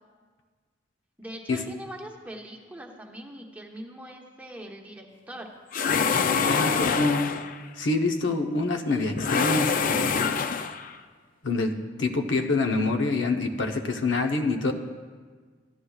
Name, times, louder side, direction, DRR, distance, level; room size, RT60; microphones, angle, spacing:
voice 1, 1.2-5.5, right 1 dB, 10° right, 0 dB, 1.0 m, -41 dB
sound 1, 5.7-7.6 9.2-10.9, left 5 dB, 50° left, 0.4 m, -25 dB
voice 2, 6.5-7.4 7.8-10.1 11.4-14.7, left 3 dB, 85° left, 3 dB, 0.9 m, -26 dB
15.0 x 11.5 x 2.4 m, 1.5 s
head